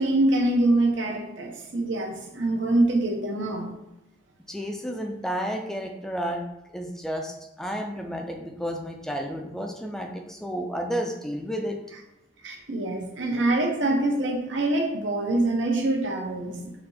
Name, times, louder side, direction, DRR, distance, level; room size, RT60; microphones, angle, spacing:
voice 1, 0.0-3.7 12.4-16.7, right 2 dB, 90° right, 1 dB, 0.9 m, -25 dB
voice 2, 4.5-6.4 6.7-11.8, equal, 5° left, 3 dB, 0.3 m, -31 dB
4.2 x 2.8 x 4.2 m, 0.93 s
head